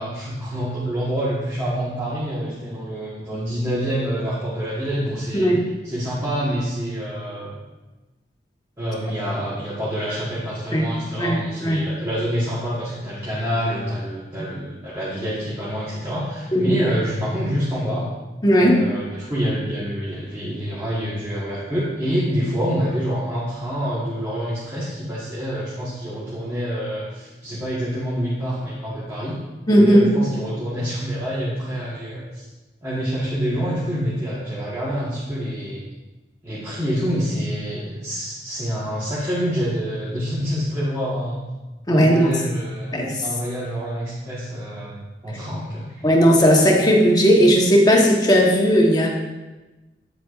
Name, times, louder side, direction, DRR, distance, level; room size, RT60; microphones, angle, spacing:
voice 1, 0.0-5.5 5.8-7.5 8.8-18.1 18.6-29.4 29.8-32.4 32.8-35.8 36.4-41.4 41.9-46.0, equal, 15° right, -10 dB, 1.4 m, -27 dB
voice 2, 11.2-11.8 16.5-16.8 18.4-18.8 29.7-30.1 41.9-42.3 42.9-43.2 46.0-49.1, equal, 20° left, -1 dB, 1.2 m, -16 dB
9.2 x 7.5 x 2.5 m, 1.1 s
head